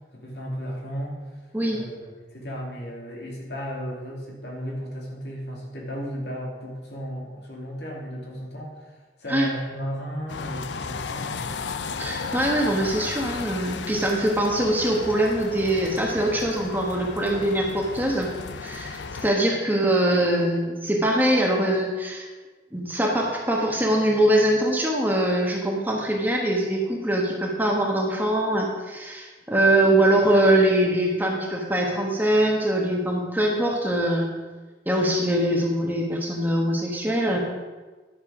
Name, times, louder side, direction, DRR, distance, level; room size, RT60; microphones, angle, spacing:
voice 1, 0.1-1.3 1.7-11.5, equal, 70° left, -2 dB, 2.6 m, -34 dB
sound 1, 10.3-19.3, left 5 dB, 85° left, 0.5 m, -34 dB
voice 2, 12.0-18.3 18.6-22.3 22.7-34.3 34.9-37.4, right 1 dB, 10° right, -1 dB, 1.3 m, -23 dB
11.0 x 6.8 x 5.0 m, 1.3 s
head